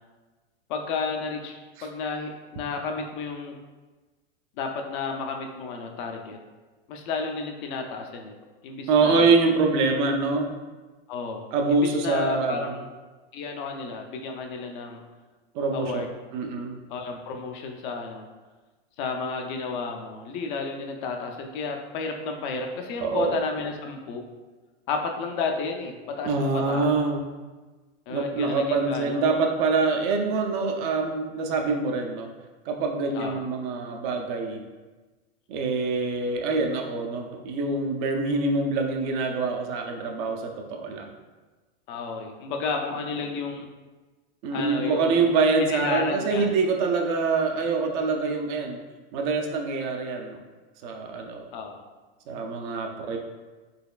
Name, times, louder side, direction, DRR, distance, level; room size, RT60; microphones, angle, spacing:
voice 1, 0.7-3.6 4.6-6.4 6.9-8.3 8.6-9.3 11.1-12.8 13.3-15.0 15.7-16.1 16.9-18.3 19.0-24.3 24.9-26.9 28.1-29.2 33.1-33.4 41.9-43.7 44.5-45.2 45.6-46.5 51.5-51.8, left 4 dB, 50° left, 3 dB, 0.5 m, -32 dB
voice 2, 8.9-10.5 11.5-12.8 15.5-16.0 16.3-16.8 23.0-23.3 26.2-27.2 28.1-32.3 32.7-34.6 35.5-41.1 44.4-48.8 49.1-50.4 50.8-51.5 52.3-53.2, right 4 dB, 50° right, 3 dB, 0.5 m, -25 dB
4.0 x 3.0 x 2.3 m, 1.3 s
supercardioid pair, 130°, 31 cm